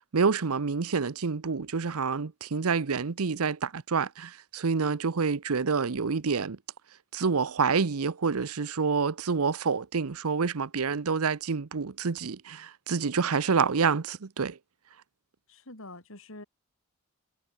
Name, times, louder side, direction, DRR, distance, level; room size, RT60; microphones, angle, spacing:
voice 1, 0.1-6.6 7.1-14.6, right 5 dB, 80° right, 0.8 m, -28 dB
voice 2, 15.5-16.4, left 2 dB, 65° left, 6.5 m, -45 dB
head